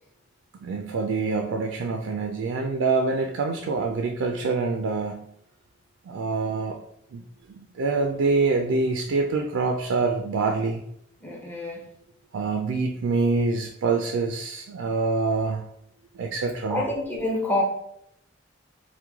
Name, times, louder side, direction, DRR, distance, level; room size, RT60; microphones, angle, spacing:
voice 1, 0.6-5.3 6.1-6.8 7.1-7.2 7.5-10.8 12.3-15.6 16.2-16.9, right 4 dB, 90° right, 2 dB, 0.4 m, -25 dB
voice 2, 11.2-11.8 16.7-17.6, left 2 dB, 10° left, -3 dB, 0.6 m, -27 dB
3.0 x 2.1 x 3.4 m, 0.73 s
head